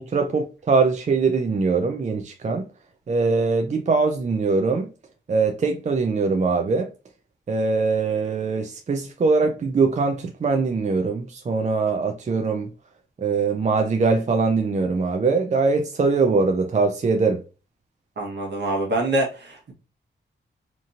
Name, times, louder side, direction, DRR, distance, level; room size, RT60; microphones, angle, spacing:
voice 1, 0.0-2.7 3.1-4.9 5.3-6.9 7.5-12.7 13.2-17.4, right 4 dB, 40° right, 0.4 m, -22 dB
voice 2, 18.2-19.7, right 1 dB, 65° right, 1.2 m, -25 dB
2.9 x 2.6 x 2.4 m
cardioid pair, 60°, 19 cm